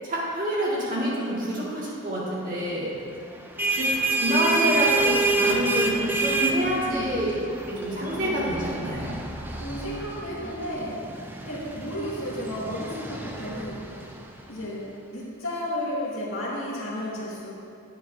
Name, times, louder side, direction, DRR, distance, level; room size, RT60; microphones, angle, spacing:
voice 1, 0.0-2.9 3.7-7.4 7.7-9.1, equal, 40° right, -7 dB, 2.0 m, -27 dB
sound 1, 3.3-14.6, right 3 dB, 10° right, 0.4 m, -28 dB
voice 2, 9.5-11.0 11.4-13.8 14.5-14.8 15.1-17.5, equal, 70° left, -6 dB, 2.1 m, -33 dB
10.5 x 8.9 x 2.7 m, 2.5 s
head